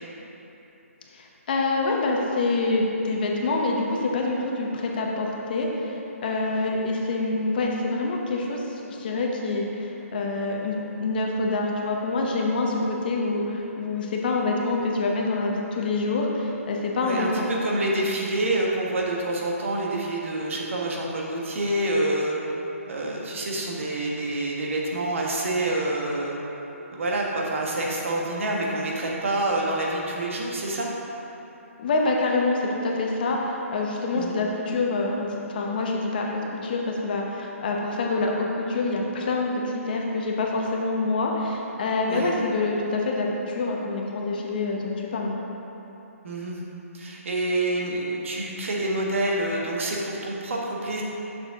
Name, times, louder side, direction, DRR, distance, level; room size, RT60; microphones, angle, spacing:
voice 1, 1.1-17.5 31.8-45.4, left 3 dB, 40° left, -1 dB, 0.8 m, -26 dB
voice 2, 17.0-22.5 22.9-26.4 26.9-30.9 34.2-34.3 42.1-42.3 46.2-46.6 46.9-51.0, right 1 dB, 60° right, -2 dB, 1.3 m, -27 dB
6.6 x 6.5 x 3.6 m, 3.0 s
hypercardioid pair, 165°, 8 cm